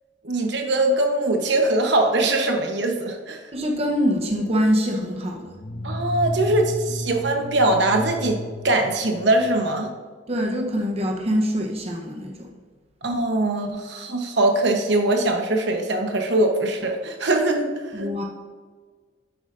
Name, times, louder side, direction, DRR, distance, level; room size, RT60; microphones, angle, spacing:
voice 1, 0.2-3.4 5.8-9.9 13.0-17.7 17.9-18.1, right 2 dB, 60° right, 3 dB, 1.0 m, -22 dB
voice 2, 3.5-5.5 10.3-12.5 17.9-18.2, equal, 30° right, 0 dB, 0.9 m, -24 dB
sound 1, 5.5-9.6, equal, 30° left, 1.0 m, -32 dB
10.5 x 8.1 x 2.6 m, 1.5 s
head